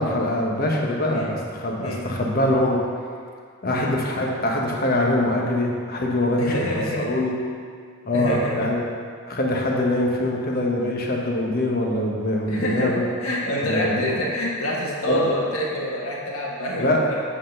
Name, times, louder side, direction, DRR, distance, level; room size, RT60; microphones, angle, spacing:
voice 1, 0.0-2.8 3.6-6.5 7.0-7.4 8.0-8.9 9.3-13.1 13.6-14.1 15.1-15.2 16.8-17.0, left 1 dB, 45° left, -1 dB, 1.1 m, -23 dB
voice 2, 6.4-7.2 8.1-8.7 12.5-12.9 13.2-17.2, equal, 85° left, -4 dB, 1.6 m, -27 dB
8.4 x 4.0 x 6.6 m, 2.1 s
head